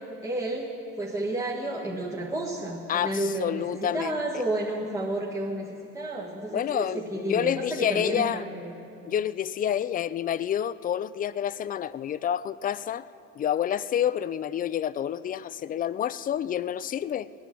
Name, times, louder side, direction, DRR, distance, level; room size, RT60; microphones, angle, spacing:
voice 1, 0.2-8.8, right 1 dB, 10° right, 1.7 m, -31 dB
voice 2, 2.9-4.4 6.5-8.5 9.0-13.1 13.4-17.3, left 10 dB, 30° left, 0.4 m, -28 dB
18.5 x 10.5 x 7.5 m
supercardioid pair, 110°, 30 cm